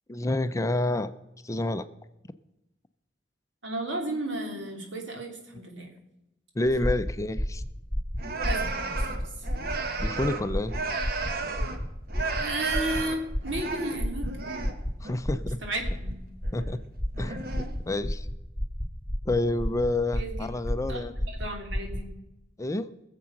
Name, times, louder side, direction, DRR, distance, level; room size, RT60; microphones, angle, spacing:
voice 1, 0.1-1.1 1.4-1.9 6.5-7.6 10.0-10.7 15.0-15.6 16.5-16.8 17.2-18.3 19.3-21.1 22.6-22.9, left 2 dB, 15° left, 11 dB, 0.5 m, -28 dB
voice 2, 3.6-5.9 8.4-9.2 12.4-14.3 15.6-16.2 20.1-20.3 20.9-21.0 21.3-22.1, right 2 dB, 75° right, 2 dB, 3.1 m, -33 dB
sound 1, 6.7-22.1, equal, 5° right, 1.3 m, -32 dB
sound 2, 8.2-11.8 12.1-14.8 15.0-15.4 16.4-16.8 17.2-18.0, right 3 dB, 55° right, 1.3 m, -34 dB
20.5 x 7.5 x 5.9 m, 0.91 s
head